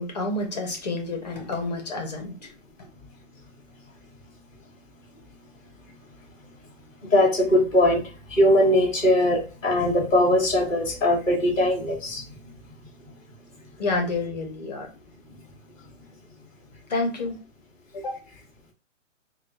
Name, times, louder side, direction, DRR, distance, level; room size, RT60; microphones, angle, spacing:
voice 1, 0.0-2.5 13.8-14.9 16.9-17.4 17.9-18.2, left 2 dB, 35° left, 1.0 m, -29 dB
voice 2, 7.1-8.0 8.3-12.2, left 1 dB, 5° left, 0.7 m, -20 dB
3.7 x 2.4 x 4.5 m
hypercardioid pair, 175°, 38 cm